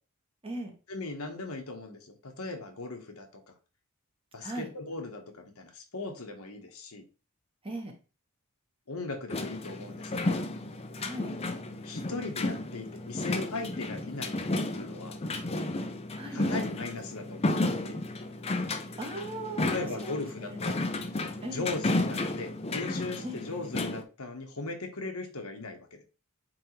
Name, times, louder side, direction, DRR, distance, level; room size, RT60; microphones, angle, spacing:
voice 1, 0.9-3.3 4.3-7.0 8.9-10.4 11.8-14.4 14.7-15.2 16.3-18.0 19.7-20.8 21.5-26.0, left 3 dB, 80° left, 4 dB, 1.3 m, -38 dB
sound 1, 9.3-24.0, left 2 dB, 25° left, 0.6 m, -33 dB
voice 2, 10.9-11.3 16.1-16.4 19.0-20.6 21.4-21.7 23.2-23.4, right 1 dB, 25° right, 2 dB, 1.3 m, -38 dB
8.8 x 3.5 x 3.2 m, 0.33 s
head